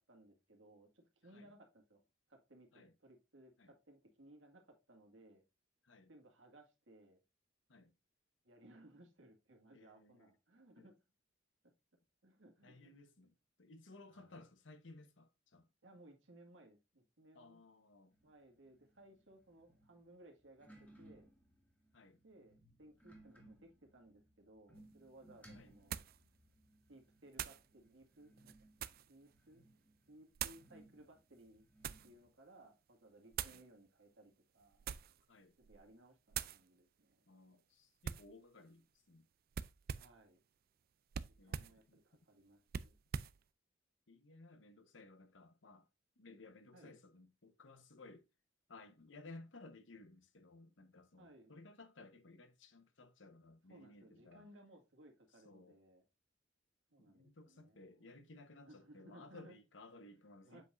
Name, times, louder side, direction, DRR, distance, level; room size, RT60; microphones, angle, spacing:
voice 1, 0.0-2.0 2.3-5.4 6.1-7.2 8.4-10.9 11.6-11.7 12.2-13.0 14.1-14.4 15.8-17.6 18.2-21.3 22.2-26.0 26.9-29.7 30.1-31.7 32.0-34.8 35.6-37.3 39.9-40.4 41.4-43.0 46.7-47.0 51.2-51.5 53.7-56.0 56.9-58.1 58.6-59.6 60.4-60.6, right 1 dB, 80° right, 2.0 m, -62 dB
voice 2, 9.7-10.3 10.8-10.9 12.6-15.7 17.3-18.1 21.9-22.2 25.5-25.7 33.4-33.6 35.3-35.5 37.3-39.3 41.4-42.0 44.1-45.9 46.2-48.2 48.7-54.5 55.4-55.8 57.0-60.6, left 2 dB, 75° left, 1.1 m, -58 dB
sound 1, 18.1-32.3, right 1 dB, 10° left, 1.9 m, -65 dB
sound 2, 24.8-24.9 25.9-26.2 27.3-27.7 28.4-29.1 30.3-30.7 31.4-32.1 33.3-33.6 34.7-35.2 35.6-35.9 36.3-36.6 38.0-38.3 39.5-40.2 41.1-41.8 42.7-43.4, right 8 dB, 50° right, 0.4 m, -44 dB
7.5 x 5.6 x 2.6 m
head